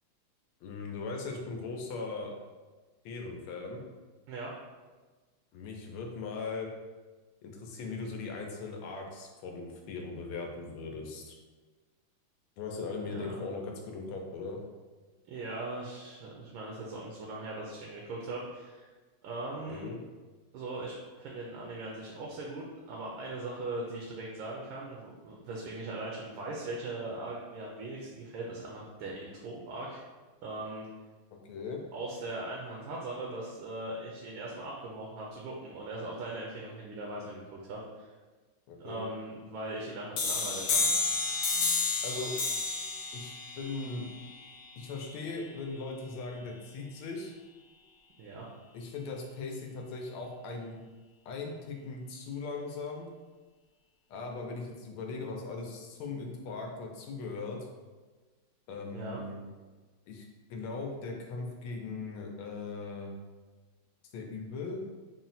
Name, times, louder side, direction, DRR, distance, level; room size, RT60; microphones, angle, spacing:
voice 1, 0.6-2.3 3.0-3.8 5.5-6.7 7.4-11.4 12.6-14.6 19.7-20.0 31.3-31.8 38.7-39.1 42.0-42.3 43.1-44.1 44.8-47.3 48.7-50.8 51.2-53.1 54.1-57.7 58.7-59.5 60.1-63.2 64.1-64.8, left 3 dB, 90° left, 1 dB, 1.5 m, -39 dB
voice 2, 15.3-18.9 19.2-19.9 20.5-30.0 30.4-30.9 31.9-38.1 38.8-40.9 48.2-48.5 58.9-59.2, right 2 dB, 75° right, -2 dB, 1.3 m, -40 dB
sound 1, 40.2-45.6, left 4 dB, 70° left, 1.1 m, -32 dB
4.2 x 2.1 x 4.0 m, 1.3 s
omnidirectional pair, 2.3 m